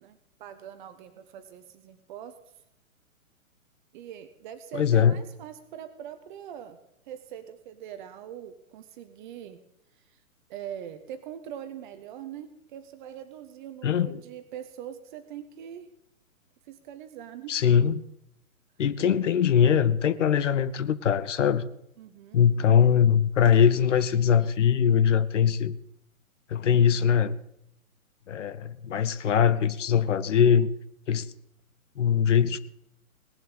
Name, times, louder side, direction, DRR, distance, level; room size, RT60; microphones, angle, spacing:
voice 1, 0.0-2.3 3.9-6.8 7.1-9.6 10.1-10.2 10.5-15.9 16.7-17.6 22.0-22.4, right 10 dB, 35° right, 1.1 m, -42 dB
voice 2, 4.7-5.2 13.8-14.2 17.5-18.0 18.8-21.7 22.3-25.7 26.5-27.3 28.3-30.7 31.1-31.3 32.0-32.6, left 8 dB, 55° left, 0.9 m, -22 dB
18.5 x 7.7 x 8.3 m
figure-of-eight pair, 120°, 42 cm